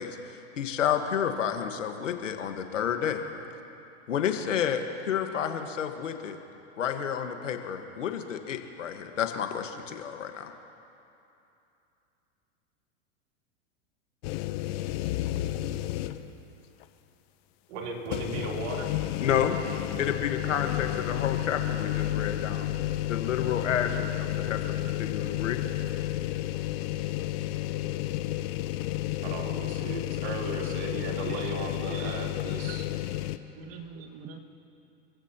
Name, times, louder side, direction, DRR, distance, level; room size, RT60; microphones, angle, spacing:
voice 1, 0.0-3.2 4.1-6.4 6.8-10.5 19.2-19.6 20.0-25.6, left 8 dB, 85° left, 6 dB, 1.5 m, -30 dB
sound 1, 14.2-16.4 16.8-16.9 18.1-33.4, left 14 dB, 55° left, 0.8 m, -31 dB
voice 2, 17.7-18.9 29.2-32.9, right 3 dB, 60° right, -1 dB, 3.6 m, -36 dB
voice 3, 31.9-32.3 32.5-33.0 33.5-34.4, right 6 dB, 40° right, 4 dB, 1.8 m, -43 dB
27.5 x 15.5 x 2.9 m, 2.8 s
hypercardioid pair, 105°, 37 cm